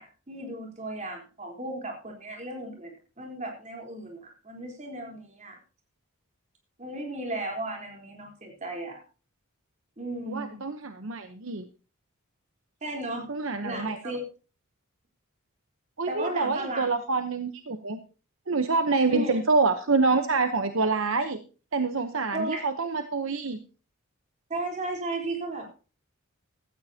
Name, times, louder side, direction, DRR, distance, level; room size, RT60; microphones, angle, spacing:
voice 1, 0.0-5.6 6.8-9.0 10.0-10.6 12.8-13.3 13.6-14.2 16.1-16.9 19.1-19.4 22.3-22.6 24.5-25.7, right 1 dB, 35° right, 1 dB, 3.8 m, -35 dB
voice 2, 10.3-11.7 13.3-14.0 16.0-18.0 18.5-21.4 21.7-23.6, right 3 dB, 60° right, 8 dB, 0.9 m, -26 dB
16.0 x 13.5 x 2.8 m, 0.35 s
head